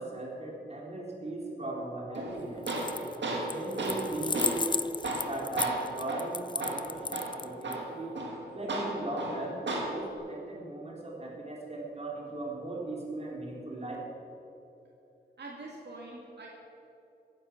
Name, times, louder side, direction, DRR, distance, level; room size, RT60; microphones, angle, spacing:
voice 1, 0.0-2.7 3.5-4.8 5.1-8.2 8.5-14.0, right 2 dB, 35° right, -2 dB, 3.6 m, -38 dB
Tools, 2.1-10.1, right 2 dB, 85° right, 2.0 m, -35 dB
sound 1, 2.6-3.2 3.5-7.7, left 4 dB, 25° left, 0.4 m, -34 dB
voice 2, 15.4-16.5, right 2 dB, 70° right, -3 dB, 2.2 m, -44 dB
15.0 x 11.0 x 5.9 m, 2.8 s
wide cardioid pair, 70°, 18 cm